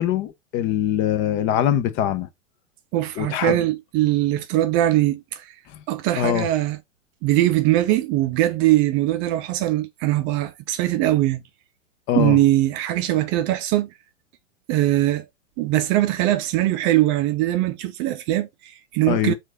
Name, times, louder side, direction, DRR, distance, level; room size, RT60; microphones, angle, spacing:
voice 1, 0.0-2.3 3.2-3.6 5.7-5.8 6.2-6.5 12.1-12.4 19.1-19.3, left 11 dB, 30° left, 0.6 m, -23 dB
voice 2, 2.9-5.5 5.9-6.8 7.2-11.4 12.1-13.9 14.7-15.2 15.6-19.3, right 15 dB, 30° right, 0.6 m, -21 dB
4.6 x 2.6 x 3.9 m
hypercardioid pair, 110°, 38 cm